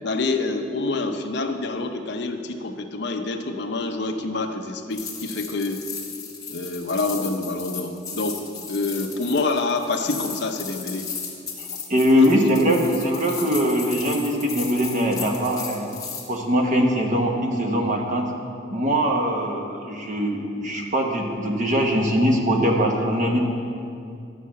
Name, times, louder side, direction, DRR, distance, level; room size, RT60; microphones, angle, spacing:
voice 1, 0.0-5.8 6.5-11.1 12.2-12.4, left 3 dB, 60° left, 6 dB, 0.7 m, -27 dB
sound 1, 4.9-16.2, left 6 dB, 20° left, 1.4 m, -35 dB
voice 2, 11.6-15.9 16.3-18.3 18.7-23.4, equal, 40° right, 1 dB, 1.2 m, -22 dB
11.5 x 5.5 x 7.5 m, 2.5 s
head